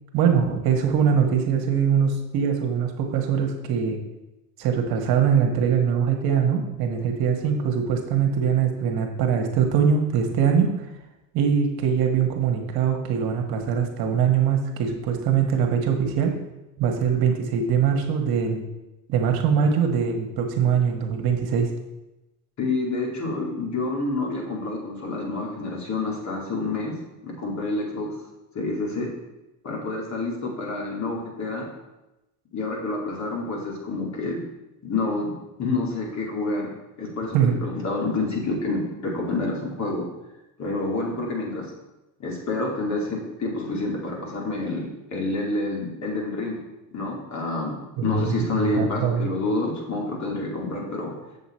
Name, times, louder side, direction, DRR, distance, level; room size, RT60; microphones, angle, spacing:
voice 1, 0.1-4.0 4.6-10.9 11.3-16.3 16.8-18.6 19.1-21.7 37.3-37.5 48.0-49.3, right 7 dB, 55° right, 3 dB, 1.4 m, -22 dB
voice 2, 22.6-26.9 27.2-28.2 28.5-29.1 29.6-31.7 32.5-34.4 34.8-36.7 37.0-40.1 40.6-41.6 42.2-46.6 46.9-51.1, left 2 dB, 40° left, -1 dB, 2.5 m, -28 dB
6.9 x 6.7 x 4.4 m, 0.99 s
supercardioid pair, 100°, 43 cm